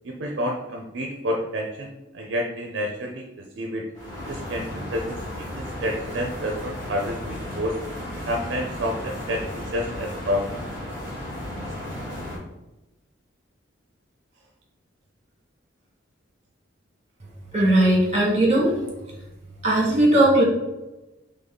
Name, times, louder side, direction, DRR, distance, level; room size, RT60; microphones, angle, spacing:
voice 1, 0.0-3.8 4.3-7.8 8.3-10.6, equal, 65° right, 1 dB, 0.5 m, -29 dB
sound 1, 3.9-12.4, left 1 dB, 15° left, 1.6 m, -34 dB
voice 2, 17.5-18.7 19.6-20.4, right 1 dB, 35° right, -1 dB, 1.3 m, -18 dB
3.9 x 3.6 x 3.7 m, 1.0 s
head